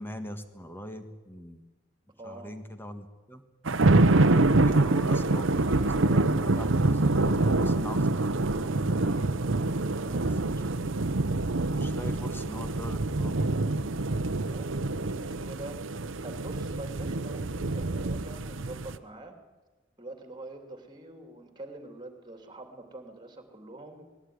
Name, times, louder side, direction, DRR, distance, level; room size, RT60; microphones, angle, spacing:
voice 1, 0.0-1.6 2.2-3.4 4.3-9.3 10.4-10.6 11.8-13.4, left 1 dB, 10° left, 8 dB, 1.6 m, -41 dB
voice 2, 2.2-2.5 9.9-10.3 14.4-14.7 15.0-19.4 20.0-24.0, right 2 dB, 25° right, 6 dB, 2.9 m, -45 dB
sound 1, 3.7-19.0, right 2 dB, 70° right, 0.9 m, -26 dB
20.5 x 16.5 x 9.5 m, 1.2 s
head